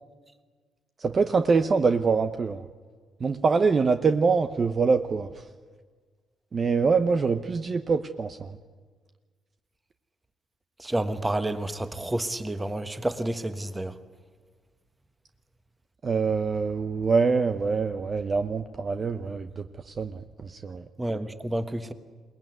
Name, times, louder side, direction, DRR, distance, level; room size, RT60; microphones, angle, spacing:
voice 1, 1.0-2.6 3.2-5.3 6.5-8.6 16.0-20.8, right 4 dB, 40° right, 8 dB, 0.8 m, -24 dB
voice 2, 10.8-14.0 21.0-21.9, right 1 dB, 15° right, 10 dB, 1.4 m, -29 dB
22.0 x 19.0 x 9.4 m, 1.5 s
cardioid pair, 90°, 0 cm